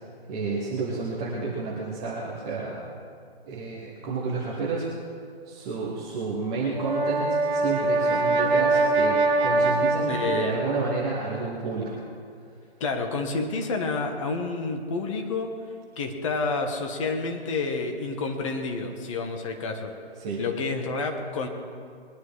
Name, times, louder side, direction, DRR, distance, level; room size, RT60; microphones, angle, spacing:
voice 1, 0.3-2.8 3.5-4.9 5.5-12.0 20.2-20.4, right 4 dB, 5° right, -6 dB, 0.5 m, -30 dB
Brass instrument, 6.6-10.9, right 3 dB, 55° right, 1.8 m, -23 dB
voice 2, 10.1-10.6 12.8-15.5 16.0-19.9 20.4-21.5, left 3 dB, 30° left, 4 dB, 1.5 m, -29 dB
21.0 x 11.0 x 4.9 m, 2.2 s
figure-of-eight pair, 150°, 32 cm